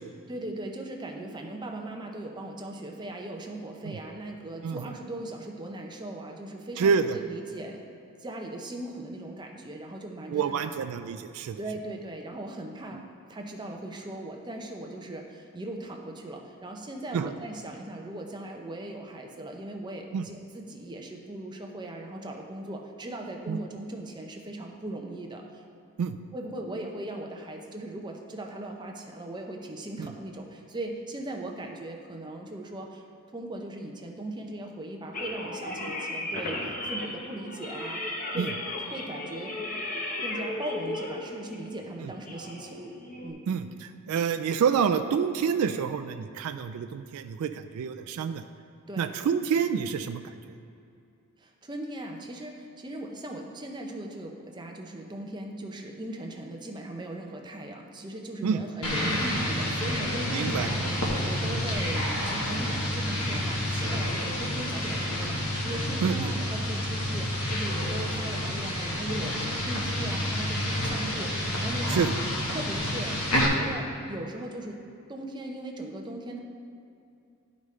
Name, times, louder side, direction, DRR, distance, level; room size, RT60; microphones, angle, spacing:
voice 1, 0.3-7.8 8.2-10.7 11.6-13.0 13.3-25.6 26.3-33.0 33.3-38.5 38.9-39.6 40.2-42.9 43.2-43.4 48.9-49.1 51.4-72.1 72.5-74.8 75.1-76.4, right 1 dB, 20° right, 2 dB, 0.6 m, -39 dB
voice 2, 6.8-7.2 10.3-11.6 17.1-17.3 20.1-20.2 23.5-23.6 26.0-26.2 30.0-30.1 38.4-38.5 42.0-42.1 43.5-48.4 49.0-50.4 58.4-58.6 60.3-60.7 61.4-61.6 66.0-66.3 71.9-72.1, right 6 dB, 75° right, 8 dB, 0.3 m, -28 dB
sound 1, 35.1-43.3, left 1 dB, 35° left, 0.8 m, -35 dB
sound 2, 58.8-73.5, left 1 dB, 80° left, 1.3 m, -29 dB
11.0 x 5.2 x 3.2 m, 2.5 s
head